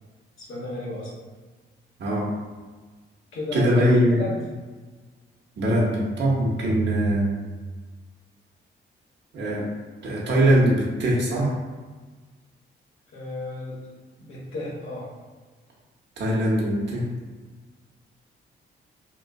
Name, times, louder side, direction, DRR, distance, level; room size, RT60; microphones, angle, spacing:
voice 1, 0.4-1.1 3.3-4.4 13.1-13.8 14.2-15.1, left 2 dB, 80° left, -5 dB, 1.1 m, -33 dB
voice 2, 3.5-4.2 5.6-7.3 9.3-9.7 10.0-11.5 16.2-17.0, right 1 dB, 60° right, -5 dB, 0.7 m, -21 dB
3.0 x 2.4 x 2.2 m, 1.4 s
cardioid pair, 65°, 21 cm